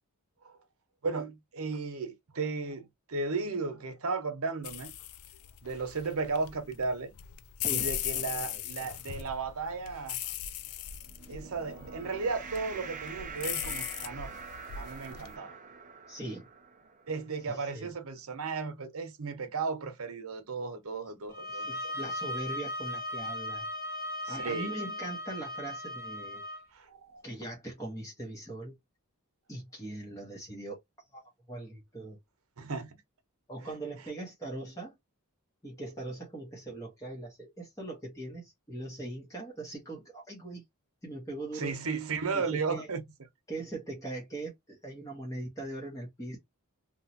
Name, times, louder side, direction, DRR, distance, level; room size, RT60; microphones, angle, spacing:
voice 1, 1.0-4.9 5.6-7.1 7.7-10.2 11.3-14.4 14.8-15.6 17.1-21.9 24.2-24.8 26.7-27.2 32.6-33.0 41.5-43.0, right 4 dB, 75° right, 0.8 m, -35 dB
sound 1, 4.6-15.3, left 11 dB, 75° left, 0.4 m, -39 dB
voice 2, 7.6-8.9 16.1-16.5 17.5-17.9 21.5-23.7 24.3-26.4 27.2-28.8 29.5-30.8 31.1-31.2 31.5-32.2 33.5-34.9 35.6-40.6 41.0-41.8 42.3-42.9 43.5-46.4, right 2 dB, 15° left, 0.9 m, -41 dB
sound 2, 10.9-17.5, right 5 dB, 35° right, 0.5 m, -46 dB
sound 3, 21.3-26.6, left 1 dB, 45° left, 1.2 m, -37 dB
3.0 x 2.3 x 2.6 m
head